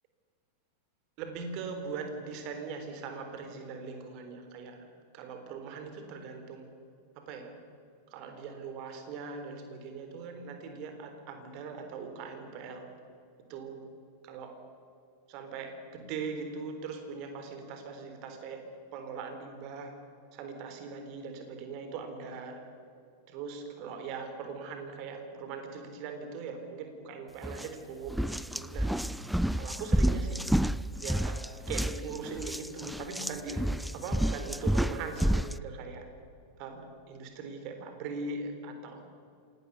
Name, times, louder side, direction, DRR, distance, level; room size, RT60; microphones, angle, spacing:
voice 1, 1.2-4.9 5.1-6.7 7.2-7.5 8.1-12.9 13.5-13.9 14.2-14.5 15.3-18.6 18.9-19.9 20.3-22.6 23.3-28.9 29.5-30.4 31.0-36.1 36.6-39.0, right 4 dB, 40° right, 6 dB, 3.9 m, -40 dB
sound 1, 27.4-27.7 28.1-35.6, right 1 dB, ahead, 0.5 m, -30 dB
27.0 x 18.5 x 7.1 m, 2.5 s
figure-of-eight pair, 90°, 0 cm